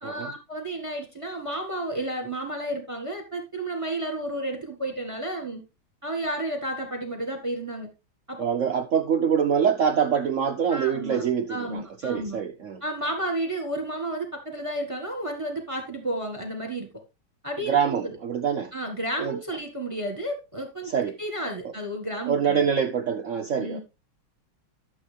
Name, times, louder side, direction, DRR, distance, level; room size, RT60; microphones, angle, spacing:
voice 1, 0.0-5.6 6.0-7.9 8.3-8.4 10.7-11.2 11.5-12.4 12.8-16.9 17.4-18.2 18.7-20.9 21.2-22.7 23.5-23.8, right 1 dB, 15° right, 1.5 m, -32 dB
voice 2, 8.4-12.8 17.7-18.7 19.2-19.4 20.9-21.1 22.3-23.8, right 7 dB, 80° right, 0.7 m, -25 dB
12.0 x 7.2 x 3.3 m
omnidirectional pair, 2.3 m